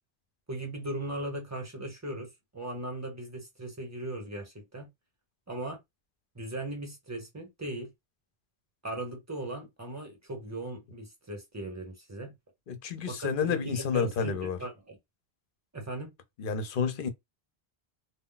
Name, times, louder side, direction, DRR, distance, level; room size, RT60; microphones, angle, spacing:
voice 1, 0.5-4.9 5.5-5.8 6.3-7.9 8.8-12.3 13.1-15.0 15.7-16.1, right 1 dB, 15° right, 0.8 m, -38 dB
voice 2, 12.7-14.6 16.4-17.1, left 6 dB, 60° left, 0.7 m, -30 dB
2.1 x 2.1 x 3.8 m
omnidirectional pair, 1.1 m